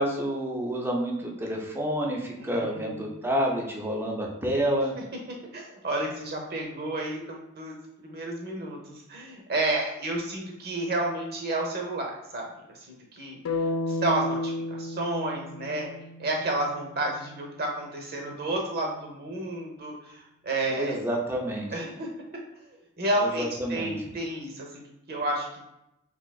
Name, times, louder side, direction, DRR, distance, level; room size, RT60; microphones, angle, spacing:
voice 1, 0.0-4.9 20.7-21.7 23.2-23.9, equal, 10° right, -1 dB, 0.5 m, -29 dB
voice 2, 2.4-3.3 5.3-7.8 8.0-13.4 13.9-15.9 16.2-21.1 21.7-22.1 23.0-25.7, right 2 dB, 45° right, 0 dB, 0.8 m, -31 dB
sound 1, 13.4-17.5, left 2 dB, 65° left, 0.4 m, -33 dB
3.6 x 2.9 x 2.3 m, 0.85 s
head